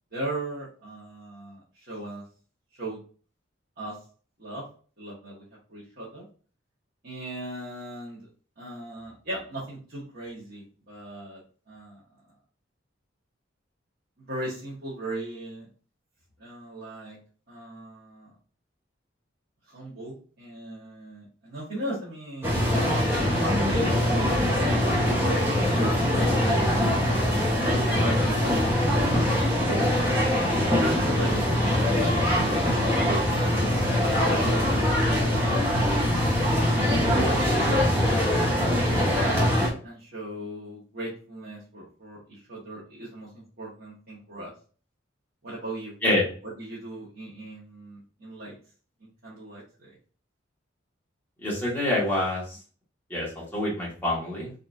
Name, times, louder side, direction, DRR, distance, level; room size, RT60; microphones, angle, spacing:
voice 1, 0.1-2.2 2.8-3.0 3.8-4.0 4.4-4.6 5.0-5.4 5.7-6.3 7.0-8.2 8.6-11.4 11.7-12.0 14.3-15.7 16.4-17.2 17.5-18.3 19.7-22.6 23.2-27.2 27.8-29.8 30.2-31.3 32.0-32.8 33.2-33.7 34.2-38.8 39.8-44.5 45.4-45.9 46.4-48.5 49.0-50.0, right 1 dB, 50° right, -9 dB, 1.5 m, -38 dB
sound 1, 22.4-39.7, left 1 dB, 10° right, 1.1 m, -23 dB
voice 2, 51.4-52.6 53.1-54.5, left 1 dB, 10° left, -6 dB, 1.9 m, -26 dB
4.3 x 3.9 x 2.6 m, 0.39 s
head